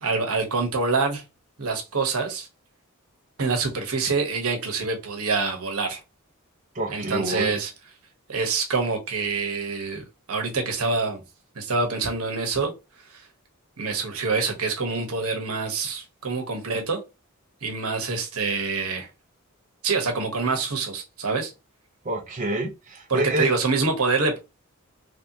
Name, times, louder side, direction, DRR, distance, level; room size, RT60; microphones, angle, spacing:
voice 1, 0.0-1.2 1.6-2.5 3.4-6.0 6.9-7.7 8.3-11.2 11.5-12.7 13.8-17.0 17.6-19.1 19.8-21.5 23.1-24.4, right 4 dB, 80° right, 1.0 m, -26 dB
voice 2, 6.7-7.6 22.0-23.5, right 1 dB, 35° right, 0.6 m, -27 dB
3.2 x 2.8 x 2.7 m
head